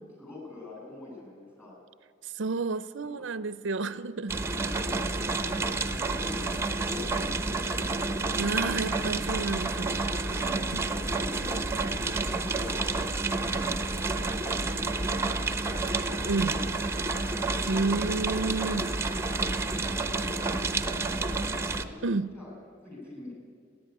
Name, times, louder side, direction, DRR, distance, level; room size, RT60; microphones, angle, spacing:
voice 1, 0.2-1.7 3.0-3.2 4.6-5.0 5.4-7.7 10.3-11.9 12.4-12.9 13.4-13.8 14.3-16.7 16.9-17.3 18.6-20.4 20.7-22.0 22.3-22.5 22.8-23.3, left 2 dB, 10° left, -3 dB, 7.4 m, -45 dB
voice 2, 2.2-4.4 8.4-10.3 10.7-10.8 16.3-16.6 17.7-18.9 22.0-22.3, right 3 dB, 65° right, 15 dB, 0.6 m, -30 dB
sound 1, 4.3-21.8, right 3 dB, 15° right, 0.9 m, -29 dB
29.0 x 11.0 x 9.6 m, 2.1 s
head